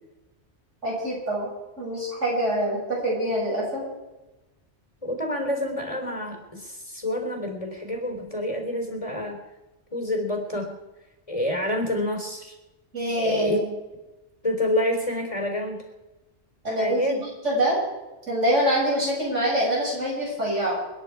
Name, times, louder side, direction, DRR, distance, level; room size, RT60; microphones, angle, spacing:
voice 1, 0.8-1.5 1.8-3.8 12.9-13.7 16.6-17.8 18.3-20.8, right 1 dB, 90° right, -4 dB, 7.7 m, -25 dB
voice 2, 5.0-9.4 9.9-10.8 11.3-12.6 13.2-13.6 14.4-15.8 16.8-17.2, left 1 dB, 30° left, 3 dB, 3.7 m, -28 dB
28.5 x 10.5 x 4.8 m, 1.1 s
omnidirectional pair, 1.2 m